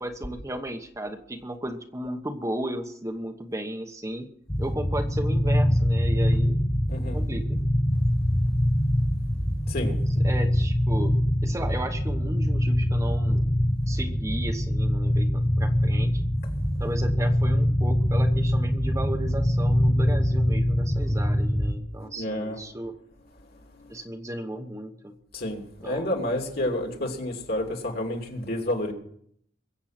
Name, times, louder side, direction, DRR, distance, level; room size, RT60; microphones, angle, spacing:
voice 1, 0.0-4.3 4.6-6.7 7.1-7.6 10.2-13.5 13.9-16.2 16.8-22.9 23.9-25.1 25.8-26.3, right 1 dB, 15° right, 4 dB, 1.1 m, -34 dB
sound 1, 4.5-21.8, equal, 15° left, 1.2 m, -24 dB
voice 2, 6.9-7.2 9.7-9.9 22.0-22.6 23.8-23.9 25.3-28.9, left 1 dB, 55° left, 2 dB, 3.0 m, -30 dB
22.5 x 8.0 x 5.9 m, 0.67 s
head